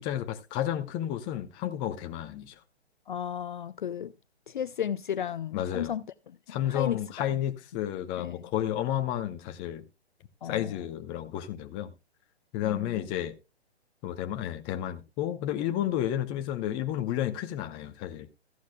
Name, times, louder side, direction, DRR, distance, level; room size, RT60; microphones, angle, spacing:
voice 1, 0.0-2.5 5.5-5.9 6.5-9.8 10.4-11.9 12.5-13.3 14.0-18.3, left 11 dB, 15° left, 0.7 m, -31 dB
voice 2, 3.1-4.1 4.5-7.3 8.2-8.4 10.4-10.7 12.6-13.1, left 9 dB, 50° left, 0.5 m, -34 dB
14.5 x 11.5 x 2.2 m
figure-of-eight pair, 135°, 33 cm